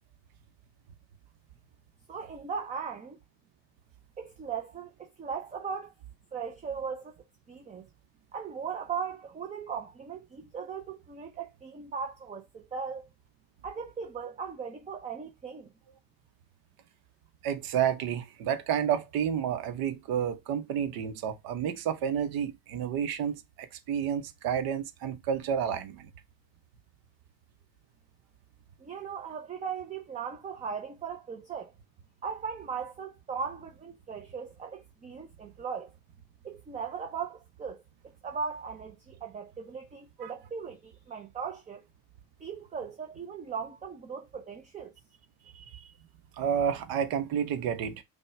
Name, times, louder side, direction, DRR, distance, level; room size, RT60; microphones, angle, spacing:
voice 1, 2.1-3.2 4.2-5.9 6.3-7.1 7.5-7.9 8.3-13.0 13.6-15.7 28.8-31.7 32.2-35.9 36.4-37.8 38.2-41.8 42.4-44.9, right 6 dB, 20° right, 0.5 m, -38 dB
voice 2, 17.4-26.1 40.2-40.3 45.5-45.8 46.4-48.0, right 8 dB, 60° right, 1.0 m, -30 dB
5.3 x 2.3 x 3.2 m
cardioid pair, 125°, 40 cm